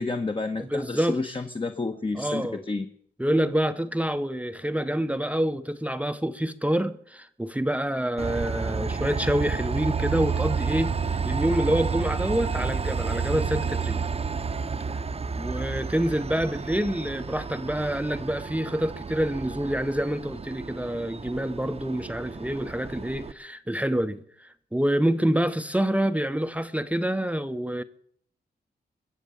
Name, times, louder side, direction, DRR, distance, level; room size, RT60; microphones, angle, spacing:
voice 1, 0.0-2.8, left 3 dB, 30° left, 1.1 m, -30 dB
voice 2, 0.6-1.2 2.1-2.6 3.2-14.0 15.4-27.8, right 1 dB, 10° right, 0.7 m, -27 dB
Train, 8.2-23.3, right 5 dB, 35° right, 0.8 m, -31 dB
22.0 x 7.4 x 7.0 m
cardioid pair, 75°, 17 cm